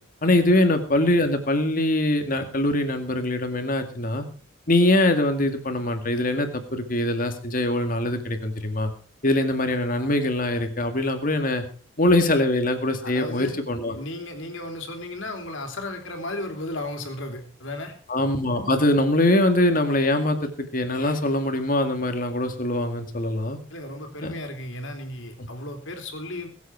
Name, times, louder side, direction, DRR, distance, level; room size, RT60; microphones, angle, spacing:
voice 1, 0.2-4.3 4.7-8.9 9.2-11.6 12.0-13.9 18.1-23.6 24.2-24.3, left 1 dB, 45° left, 6 dB, 2.2 m, -23 dB
voice 2, 13.0-13.6 13.9-18.0 23.7-26.5, left 1 dB, 80° left, 5 dB, 3.2 m, -34 dB
21.5 x 8.3 x 4.6 m, 0.41 s
head